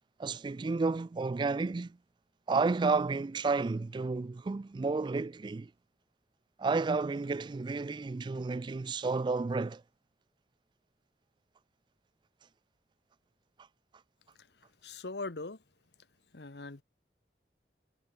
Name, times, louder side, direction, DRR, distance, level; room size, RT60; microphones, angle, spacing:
voice 1, 0.2-2.0 2.5-5.7 6.6-9.8, right 4 dB, 25° right, 0.3 m, -31 dB
voice 2, 14.8-15.6 16.3-16.8, left 3 dB, 70° left, 1.2 m, -40 dB
head